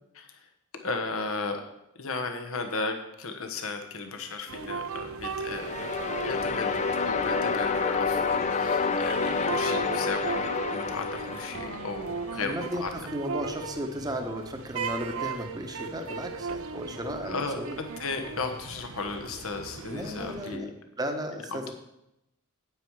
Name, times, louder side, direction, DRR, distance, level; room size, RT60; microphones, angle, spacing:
voice 1, 0.1-0.5 0.8-1.6 1.9-6.0 6.2-6.8 7.0-13.1 15.7-15.8 17.2-20.7 21.5-21.7, left 3 dB, 70° left, 5 dB, 1.3 m, -35 dB
sound 1, 4.5-20.6, right 5 dB, 65° right, 0.6 m, -38 dB
sound 2, 5.4-12.4, left 5 dB, 30° left, 0.5 m, -29 dB
sound 3, 8.2-11.3, left 1 dB, 10° left, 1.3 m, -48 dB
voice 2, 12.4-17.8 19.9-20.7 21.0-21.7, equal, 15° right, 5 dB, 1.0 m, -35 dB
9.4 x 9.0 x 4.7 m, 0.84 s
head